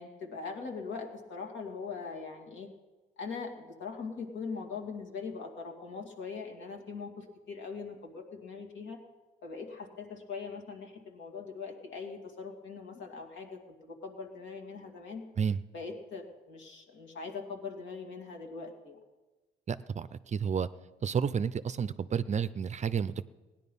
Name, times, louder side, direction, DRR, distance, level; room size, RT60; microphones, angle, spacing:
voice 1, 0.0-2.7 3.2-9.0 9.4-15.2 15.7-19.0, left 5 dB, 70° left, 2 dB, 2.3 m, -41 dB
voice 2, 19.7-20.7 21.0-23.2, right 7 dB, 35° right, 14 dB, 0.5 m, -31 dB
17.0 x 10.5 x 5.4 m, 1.2 s
cardioid pair, 90°, 20 cm